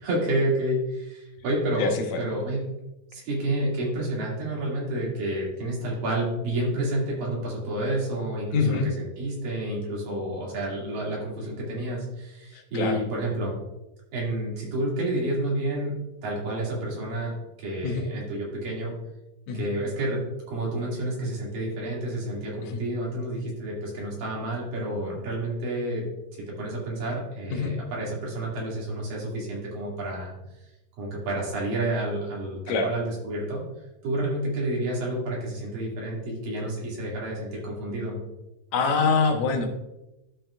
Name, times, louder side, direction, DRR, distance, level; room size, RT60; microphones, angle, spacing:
voice 1, 0.0-2.7 3.1-13.6 14.1-16.0 16.2-17.3 17.6-18.9 19.5-26.1 26.5-30.3 31.0-33.6 34.0-38.2, right 1 dB, 85° right, -5 dB, 4.1 m, -29 dB
voice 2, 1.8-2.2 8.5-8.9 12.5-13.0 17.8-18.0 19.5-19.7 22.7-22.8 27.5-27.7 32.7-32.9 38.7-39.7, left 4 dB, 65° left, 4 dB, 2.1 m, -25 dB
12.0 x 6.0 x 2.4 m, 0.95 s
omnidirectional pair, 3.9 m